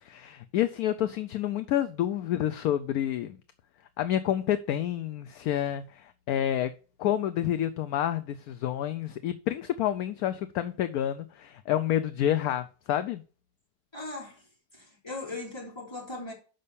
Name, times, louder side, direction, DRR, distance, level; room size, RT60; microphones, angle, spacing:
voice 1, 0.0-3.4 4.0-6.7 7.0-13.2, left 11 dB, 70° left, 0.9 m, -29 dB
voice 2, 13.9-14.4 14.7-16.3, left 2 dB, 15° left, 3.4 m, -38 dB
6.5 x 5.5 x 6.8 m
omnidirectional pair, 1.9 m